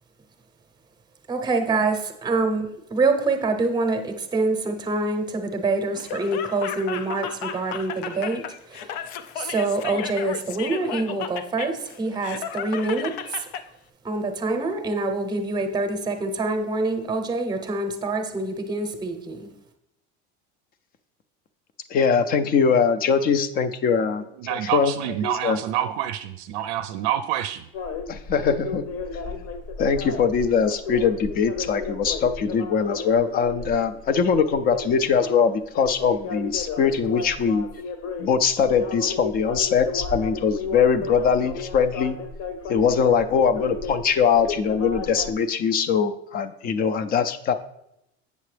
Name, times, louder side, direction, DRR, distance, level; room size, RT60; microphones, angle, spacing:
voice 1, 1.3-2.0 2.2-9.0 9.4-13.4 14.0-19.5, right 3 dB, 15° right, 6 dB, 0.7 m, -26 dB
Laughter, 5.9-13.6, left 8 dB, 90° left, 0.6 m, -34 dB
voice 2, 21.9-25.6 28.1-28.8 29.8-37.7 38.2-42.2 42.7-47.5, left 6 dB, 30° left, 11 dB, 0.4 m, -22 dB
voice 3, 24.4-27.6, right 11 dB, 80° right, 10 dB, 0.5 m, -27 dB
sound 1, 27.7-45.3, left 5 dB, 55° left, 0.9 m, -33 dB
8.1 x 6.8 x 3.3 m, 0.82 s
cardioid pair, 160°, 32 cm